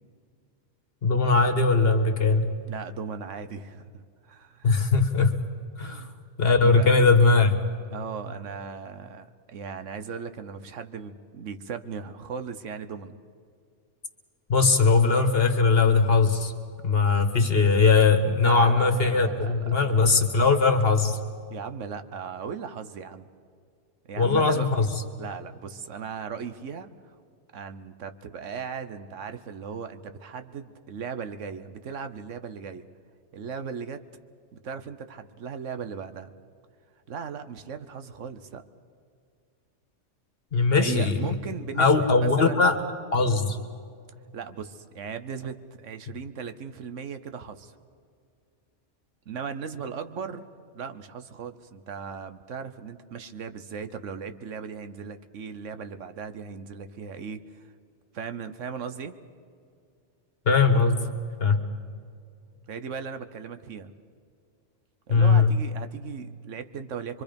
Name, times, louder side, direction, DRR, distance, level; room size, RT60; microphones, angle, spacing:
voice 1, 1.0-2.5 4.6-5.4 5.8-6.1 6.4-7.6 14.5-16.5 16.8-21.2 24.2-24.9 40.5-41.3 41.8-42.8 43.1-43.6 60.4-61.1 61.4-61.6 65.1-65.6, left 4 dB, 50° left, 7 dB, 1.7 m, -20 dB
voice 2, 2.7-4.7 5.8-6.2 6.6-6.9 7.9-13.2 18.4-19.9 21.5-23.3 24.1-24.7 25.2-27.1 27.5-32.8 33.3-34.0 34.6-36.3 37.1-38.6 40.8-42.7 44.3-47.8 49.3-50.5 50.7-57.7 58.1-59.2 62.7-63.9 65.1-67.2, right 6 dB, 75° right, 10 dB, 1.3 m, -37 dB
25.0 x 24.0 x 5.3 m, 2.3 s
omnidirectional pair, 1.3 m